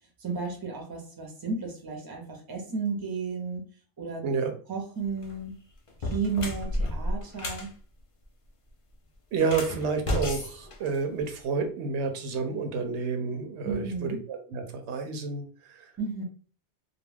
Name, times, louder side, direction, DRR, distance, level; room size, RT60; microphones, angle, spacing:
voice 1, 0.2-3.6 4.0-4.3 4.7-5.6 6.0-7.7 13.6-14.2 16.0-16.2, right 4 dB, 25° right, 1 dB, 0.6 m, -33 dB
sound 1, 5.1-5.4 5.9-7.7 9.4-11.4, left 1 dB, 45° left, 0.4 m, -32 dB
voice 2, 9.3-15.9, right 5 dB, 85° right, 5 dB, 0.9 m, -30 dB
2.3 x 2.1 x 3.2 m, 0.42 s
omnidirectional pair, 1.1 m